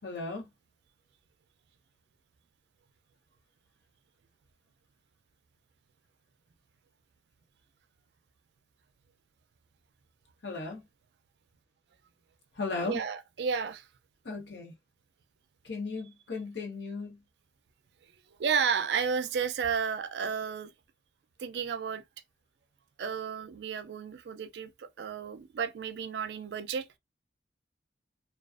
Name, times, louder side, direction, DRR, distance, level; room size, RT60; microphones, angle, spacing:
voice 1, 0.0-0.5 10.4-10.8 12.5-13.0 14.2-14.7 15.6-17.2, left 3 dB, 85° left, 0.8 m, -36 dB
voice 2, 12.9-13.9 18.4-20.7 21.4-22.0 23.0-26.9, right 6 dB, 70° right, 0.4 m, -32 dB
2.4 x 2.3 x 2.4 m
head